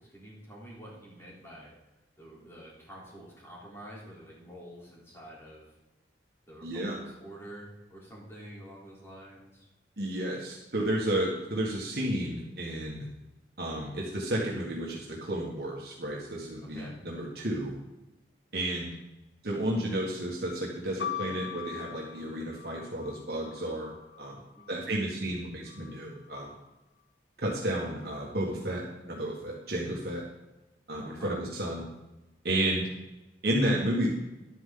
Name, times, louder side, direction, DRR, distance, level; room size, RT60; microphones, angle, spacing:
voice 1, 0.0-1.7 2.2-5.8 6.5-9.7 16.6-17.0 24.5-24.9 31.0-31.4, right 1 dB, 15° left, -6 dB, 3.5 m, -48 dB
voice 2, 6.6-7.0 10.0-13.1 13.6-17.7 18.5-18.9 19.4-23.9 24.2-24.4 24.7-26.5 27.4-30.3 30.9-31.8 32.4-32.9 33.4-34.1, right 1 dB, 60° right, -3 dB, 1.6 m, -32 dB
sound 1, 21.0-24.8 25.7-26.4, left 10 dB, 70° left, 0.6 m, -41 dB
11.5 x 9.2 x 3.9 m, 1.0 s
head